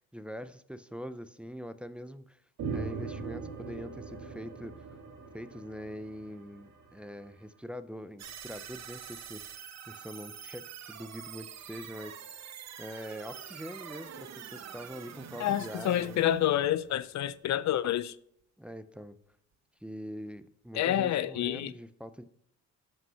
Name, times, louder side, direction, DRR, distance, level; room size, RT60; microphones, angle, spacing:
voice 1, 0.0-2.4 2.7-4.8 5.3-12.5 12.8-16.2 18.6-19.2 19.8-22.2, equal, 5° right, 0.7 m, -43 dB
sound 1, 2.6-7.3, right 4 dB, 85° right, 2.3 m, -40 dB
sound 2, 8.2-17.4, right 8 dB, 60° right, 1.1 m, -46 dB
voice 2, 15.4-18.2 20.7-21.7, left 12 dB, 65° left, 0.6 m, -28 dB
13.5 x 5.5 x 5.7 m
cardioid pair, 90°, 30 cm